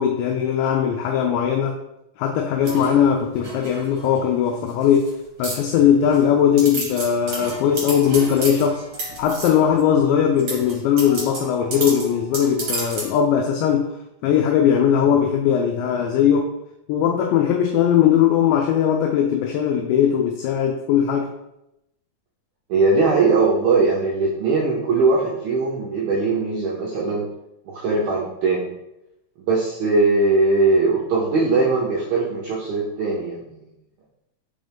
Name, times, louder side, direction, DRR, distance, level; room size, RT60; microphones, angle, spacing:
voice 1, 0.0-1.8 2.2-5.1 5.4-8.8 9.2-13.9 14.2-16.5 16.9-21.3, left 8 dB, 85° left, 3 dB, 2.6 m, -19 dB
sound 1, 2.6-4.2 4.7-5.1 5.4-6.2 6.6-9.8 10.4-13.2, right 2 dB, 55° right, 1.7 m, -32 dB
voice 2, 22.7-27.3 27.7-28.7 29.4-33.6, right 3 dB, 85° right, -4 dB, 2.1 m, -20 dB
6.0 x 5.2 x 3.5 m, 0.88 s
omnidirectional pair, 5.6 m